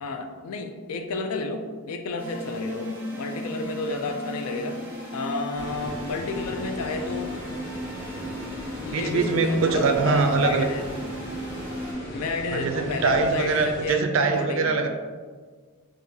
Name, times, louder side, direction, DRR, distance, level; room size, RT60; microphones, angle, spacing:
voice 1, 0.0-4.8 5.1-7.3 8.8-10.9 12.1-14.8, left 3 dB, 75° left, 6 dB, 0.4 m, -31 dB
sound 1, 2.2-11.9, equal, 10° right, 0.6 m, -36 dB
sound 2, 5.5-13.9, left 1 dB, 50° left, 0.9 m, -38 dB
voice 2, 8.9-10.7 12.5-14.9, right 4 dB, 60° right, 5 dB, 0.4 m, -23 dB
3.6 x 2.6 x 2.7 m, 1.5 s
head